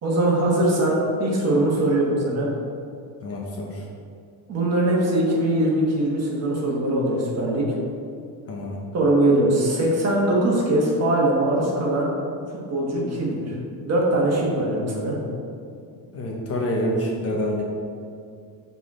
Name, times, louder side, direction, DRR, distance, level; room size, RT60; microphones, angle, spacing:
voice 1, 0.0-2.5 4.5-7.6 8.9-12.1 12.5-13.6 13.8-15.1, right 1 dB, 35° right, -3 dB, 1.4 m, -21 dB
voice 2, 3.2-3.8 8.5-8.8 16.1-17.6, equal, 35° left, -1 dB, 0.8 m, -27 dB
6.9 x 4.1 x 3.7 m, 2.4 s
cardioid pair, 155°, 42 cm